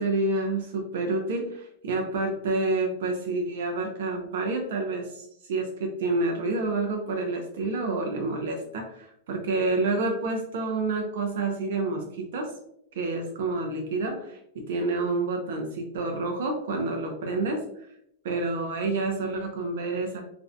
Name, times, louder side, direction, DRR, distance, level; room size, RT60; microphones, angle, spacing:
voice 1, 0.0-12.5 13.0-17.6 18.3-20.2, right 3 dB, 75° right, 2 dB, 0.4 m, -28 dB
2.5 x 2.1 x 2.5 m, 0.76 s
supercardioid pair, 160°, 0 cm